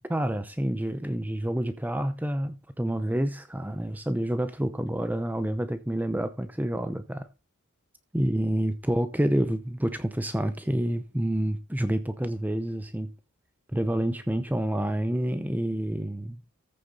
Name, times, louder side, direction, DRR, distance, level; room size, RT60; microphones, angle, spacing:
voice 1, 0.1-7.3 8.1-13.1 13.7-16.4, right 1 dB, 10° right, 0.7 m, -28 dB
14.5 x 6.6 x 4.0 m
head